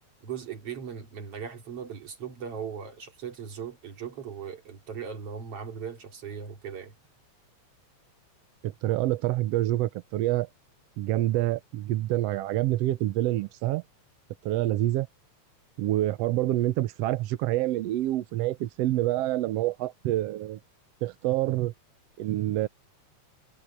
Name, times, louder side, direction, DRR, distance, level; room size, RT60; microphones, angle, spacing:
voice 1, 0.2-6.9, right 7 dB, 50° right, 3.7 m, -38 dB
voice 2, 8.6-10.5 11.0-13.8 14.4-15.1 15.8-20.6 21.0-21.7 22.2-22.7, right 15 dB, 75° right, 1.6 m, -27 dB
omnidirectional pair, 3.4 m